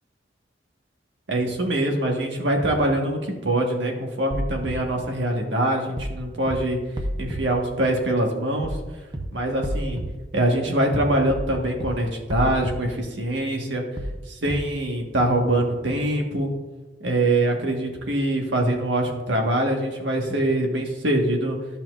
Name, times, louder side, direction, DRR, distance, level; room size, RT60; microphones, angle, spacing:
voice 1, 1.3-6.8 7.2-8.8 9.3-10.0 10.3-13.8 14.3-16.5 17.0-21.6, right 1 dB, 90° right, 1 dB, 1.5 m, -23 dB
sound 1, 4.3-4.7 6.0-6.2 6.5-6.6 7.0-7.4 8.6-8.8 9.1-9.2 9.6-10.1 11.3-11.5 11.8-11.9 12.3-12.7 14.0-14.2 14.5-14.6, equal, 25° right, 0.8 m, -29 dB
13.0 x 5.7 x 2.5 m, 1.2 s
head